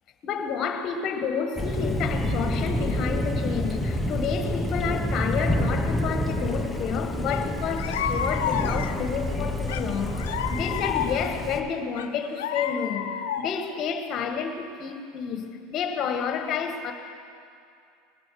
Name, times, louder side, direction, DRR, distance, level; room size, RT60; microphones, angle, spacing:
voice 1, 0.2-16.9, left 6 dB, 45° left, 1.5 m, -30 dB
Thunder, 1.6-11.6, left 1 dB, 5° left, 1.1 m, -28 dB
sound 1, 7.3-7.4 7.8-9.1 9.7-11.4 12.0-13.7, left 9 dB, 85° left, 0.7 m, -31 dB
20.5 x 8.5 x 4.9 m
supercardioid pair, 110°, 0 cm